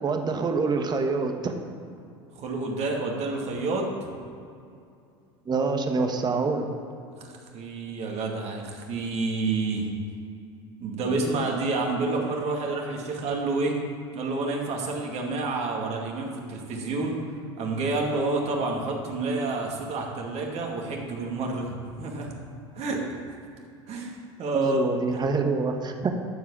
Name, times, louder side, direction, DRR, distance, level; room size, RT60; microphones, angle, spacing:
voice 1, 0.0-1.5 5.5-6.7 24.5-26.1, right 4 dB, 30° right, 5 dB, 1.3 m, -26 dB
voice 2, 2.4-3.9 7.2-9.9 10.8-13.8 14.1-17.2 17.6-22.4 22.7-23.0 23.9-24.8, right 3 dB, 50° right, 0 dB, 2.2 m, -29 dB
12.5 x 4.8 x 7.3 m, 2.5 s
hypercardioid pair, 75°, 14 cm